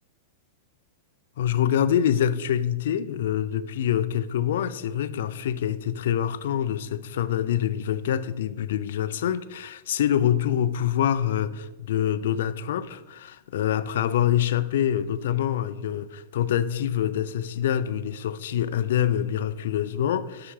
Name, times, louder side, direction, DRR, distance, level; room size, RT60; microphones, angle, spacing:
voice 1, 1.4-20.5, left 10 dB, 60° left, 0.4 m, -25 dB
6.8 x 5.7 x 4.8 m
supercardioid pair, 175°, 0 cm